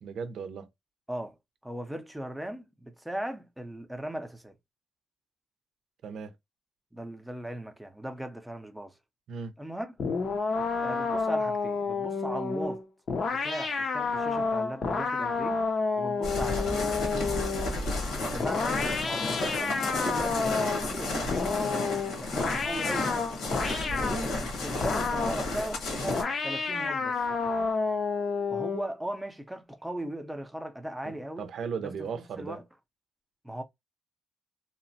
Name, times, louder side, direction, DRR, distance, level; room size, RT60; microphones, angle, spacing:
voice 1, 0.0-0.7 6.0-6.3 9.3-9.5 23.9-24.0 31.0-32.6, right 6 dB, 65° right, 0.6 m, -37 dB
voice 2, 1.6-4.6 6.9-9.0 9.6-9.9 10.8-12.8 13.3-15.6 16.0-16.8 18.3-20.4 20.9-21.9 22.2-23.1 23.6-27.2 28.5-31.5 31.8-32.6 33.4-33.6, right 1 dB, 5° right, 0.6 m, -38 dB
sound 1, 10.0-17.8 18.4-20.9 21.3-24.2 24.8-25.5 26.1-28.9, left 4 dB, 50° left, 0.6 m, -30 dB
sound 2, 16.2-26.2, left 2 dB, 75° left, 1.1 m, -32 dB
2.9 x 2.1 x 2.7 m
cardioid pair, 90°, 0 cm